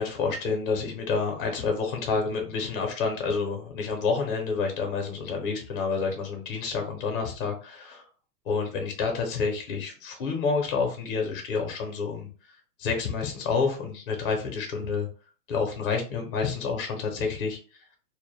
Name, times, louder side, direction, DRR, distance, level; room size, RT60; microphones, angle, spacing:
voice 1, 0.0-8.0 8.4-12.3 12.8-15.1 15.5-17.6, left 5 dB, 35° left, 3 dB, 0.6 m, -29 dB
2.1 x 2.1 x 3.1 m, 0.37 s
supercardioid pair, 160°, 47 cm